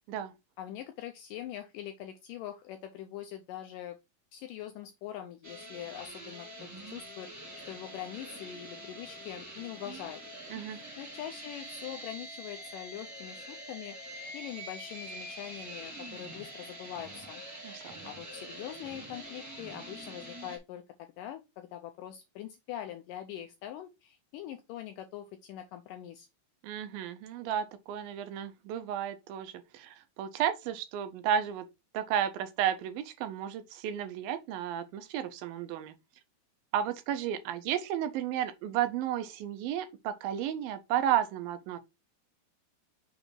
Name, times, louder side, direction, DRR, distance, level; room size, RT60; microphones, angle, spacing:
voice 1, 0.6-4.0 4.3-7.3 7.7-10.2 10.7-14.0 14.3-17.4 18.0-26.3, left 11 dB, 85° left, 1.9 m, -43 dB
sound 1, 5.4-20.6, right 1 dB, 30° right, 0.3 m, -45 dB
voice 2, 17.6-18.1 26.6-31.7 31.9-35.9 36.7-41.8, right 10 dB, 80° right, 2.3 m, -33 dB
6.0 x 3.9 x 4.3 m
omnidirectional pair, 4.4 m